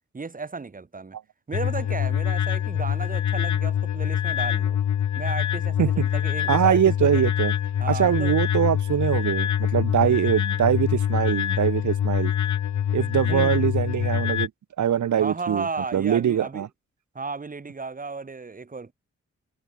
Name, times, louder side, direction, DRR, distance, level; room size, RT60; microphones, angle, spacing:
voice 1, 0.1-1.2 1.5-4.8 5.1-7.2 7.8-8.3 10.0-10.2 13.3-13.5 15.2-16.7 17.1-18.9, right 4 dB, 30° right, 6.3 m, -34 dB
sound 1, 1.5-14.5, left 9 dB, 70° left, 1.9 m, -25 dB
voice 2, 6.5-7.5 7.9-12.3 12.9-14.5 14.8-15.7 15.9-16.7, right 9 dB, 80° right, 2.0 m, -23 dB
wide cardioid pair, 165°, 29 cm